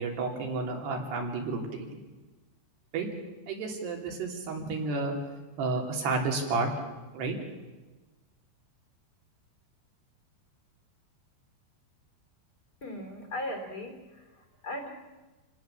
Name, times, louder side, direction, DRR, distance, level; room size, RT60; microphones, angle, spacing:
voice 1, 0.0-2.0 2.9-3.1 3.5-5.1 5.6-6.7 7.1-7.4, right 3 dB, 65° right, 2 dB, 5.2 m, -31 dB
voice 2, 12.8-14.9, left 1 dB, 25° left, 5 dB, 3.3 m, -38 dB
28.0 x 18.5 x 7.3 m, 1.2 s
omnidirectional pair, 5.1 m